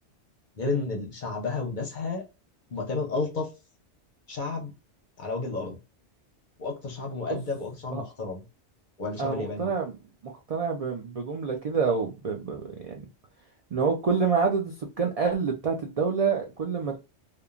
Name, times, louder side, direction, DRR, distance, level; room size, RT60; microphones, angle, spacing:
voice 1, 0.6-2.2 2.7-3.5 4.3-4.7 5.2-5.8 6.6-8.4 9.0-9.7, left 3 dB, 50° left, 0.6 m, -31 dB
voice 2, 9.2-10.0 10.2-13.0 13.7-17.0, right 5 dB, 60° right, 0.3 m, -27 dB
2.9 x 2.2 x 2.4 m
omnidirectional pair, 1.2 m